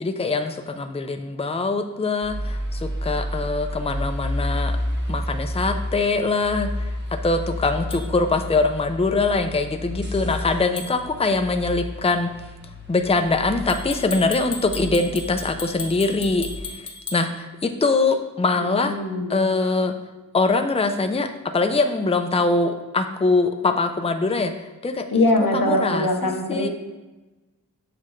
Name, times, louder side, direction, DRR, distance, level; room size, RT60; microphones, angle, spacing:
voice 1, 0.0-4.7 5.1-6.9 7.2-12.3 12.9-16.8 17.1-19.0 19.3-19.9 20.3-21.3 21.5-24.5 24.8-25.1 25.5-26.1 26.5-26.7, left 3 dB, 20° left, 6 dB, 0.5 m, -23 dB
sound 1, 2.2-16.6, left 1 dB, 30° right, 1.3 m, -31 dB
sound 2, 7.9-8.1 10.8-11.0 13.7-17.3, left 4 dB, 55° left, 1.0 m, -35 dB
voice 2, 18.6-19.4 25.1-26.7, left 1 dB, 90° left, 2 dB, 0.9 m, -22 dB
7.5 x 4.9 x 3.2 m, 1.1 s
wide cardioid pair, 40°, 34 cm